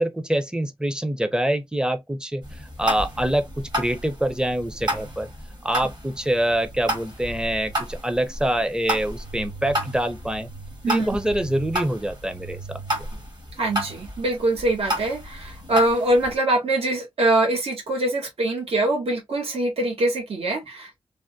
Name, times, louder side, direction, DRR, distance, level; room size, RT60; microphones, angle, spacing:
voice 1, 0.0-5.3 5.6-10.5 10.9-12.8, right 1 dB, 10° right, 0.6 m, -25 dB
sound 1, 2.4-16.3, right 1 dB, 45° right, 1.3 m, -32 dB
voice 2, 13.6-21.0, right 1 dB, 75° right, 1.2 m, -23 dB
3.4 x 2.2 x 2.6 m
wide cardioid pair, 70°, 10 cm